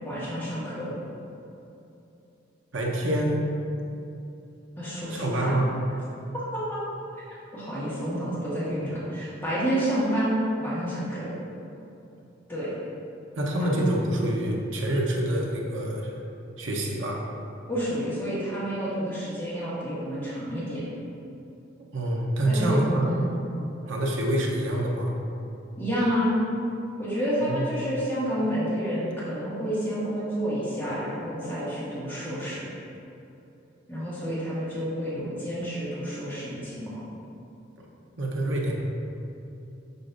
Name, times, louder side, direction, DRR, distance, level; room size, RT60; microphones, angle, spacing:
voice 1, 0.0-0.9 4.8-5.6 6.3-6.8 7.3-11.3 12.5-12.7 13.6-13.8 17.7-20.8 22.5-22.8 23.0-23.4 25.8-26.4 27.0-32.6 33.9-36.9, equal, 10° left, -10 dB, 1.5 m, -29 dB
voice 2, 2.7-3.4 5.1-5.7 13.4-16.2 16.6-17.2 21.9-23.1 23.9-25.2 27.4-27.7 37.8-37.9 38.2-38.7, right 1 dB, 75° right, -1 dB, 0.9 m, -26 dB
6.7 x 5.4 x 2.6 m, 2.8 s
head